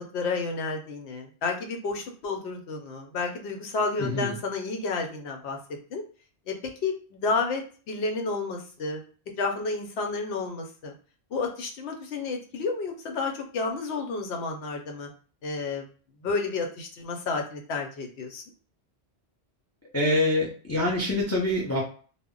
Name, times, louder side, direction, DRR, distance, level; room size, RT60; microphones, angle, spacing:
voice 1, 0.0-5.6 5.9-6.0 6.5-9.0 9.4-10.9 11.3-15.1 15.4-15.8 16.2-18.4, left 4 dB, 90° left, 2 dB, 0.9 m, -31 dB
voice 2, 4.0-4.3 19.9-21.8, left 1 dB, 20° left, -2 dB, 0.4 m, -25 dB
2.1 x 2.0 x 3.6 m, 0.40 s
omnidirectional pair, 1.1 m